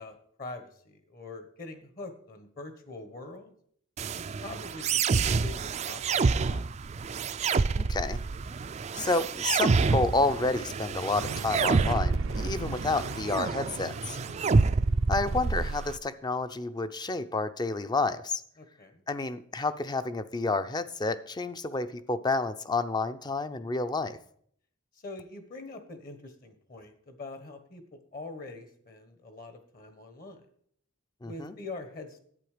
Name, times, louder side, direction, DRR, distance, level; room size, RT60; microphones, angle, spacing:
voice 1, 0.0-3.5 4.1-6.0 6.5-6.6 14.2-14.4 18.6-19.0 25.0-30.5 31.2-32.2, left 2 dB, 45° left, 9 dB, 1.2 m, -44 dB
sound 1, 4.0-16.0, right 4 dB, 35° right, 0.4 m, -28 dB
voice 2, 7.8-8.2 8.9-14.2 15.1-18.4 19.1-24.2 31.2-31.5, left 3 dB, 20° left, 12 dB, 0.5 m, -30 dB
sound 2, 11.2-16.5, right 3 dB, 90° right, 0.7 m, -40 dB
11.0 x 8.6 x 5.0 m, 0.63 s
head